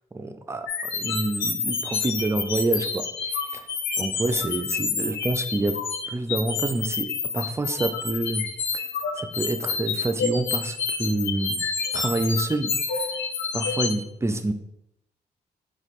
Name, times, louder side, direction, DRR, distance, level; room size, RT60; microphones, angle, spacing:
voice 1, 0.1-3.7 4.0-5.8 6.1-8.4 8.7-8.9 9.2-11.6 11.9-13.1 13.5-14.5, right 2 dB, 15° right, 8 dB, 0.4 m, -28 dB
sound 1, 0.7-13.9, left 5 dB, 90° left, 0.5 m, -28 dB
4.2 x 2.3 x 3.1 m, 0.80 s
hypercardioid pair, 40°, 18 cm